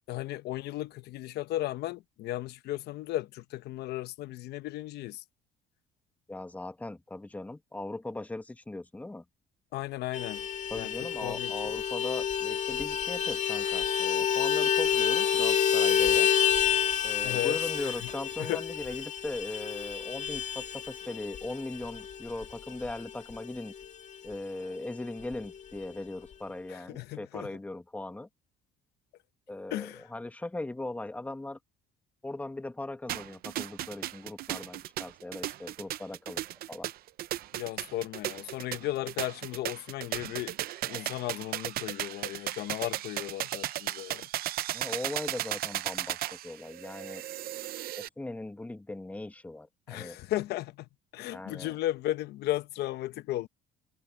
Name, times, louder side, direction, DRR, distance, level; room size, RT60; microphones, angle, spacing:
voice 1, 0.1-5.2 9.7-10.4 10.7-10.9 11.2-11.7 17.2-17.6 18.4-18.6 26.7-27.5 29.7-30.1 37.5-40.6 40.8-44.3 49.9-50.9 51.1-53.5, left 15 dB, 75° left, 1.0 m, -35 dB
voice 2, 6.3-9.2 10.7-16.3 17.0-23.7 24.2-28.3 29.5-31.6 32.2-36.4 36.7-36.9 44.7-47.2 48.0-50.2 51.3-51.8, left 2 dB, 10° left, 1.1 m, -39 dB
Vehicle horn car horn honking, 10.1-24.0 24.3-24.4 24.7-24.9 25.2-25.9, left 8 dB, 45° left, 1.9 m, -29 dB
sound 1, 33.1-48.1, right 14 dB, 60° right, 0.6 m, -36 dB
cardioid pair, 120°, 17 cm